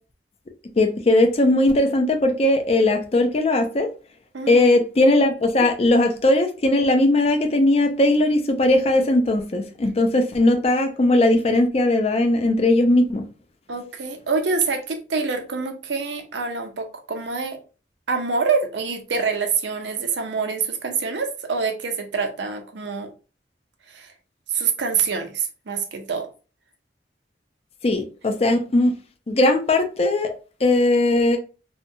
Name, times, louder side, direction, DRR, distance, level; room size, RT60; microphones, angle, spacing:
voice 1, 0.8-3.9 4.5-13.2 27.8-28.9 29.3-30.3 30.6-31.4, left 2 dB, 35° left, 0.4 m, -19 dB
voice 2, 4.3-4.7 13.7-17.6 18.1-23.1 23.9-24.1 24.5-26.3, right 5 dB, 85° right, 0.6 m, -26 dB
2.8 x 2.2 x 2.6 m
head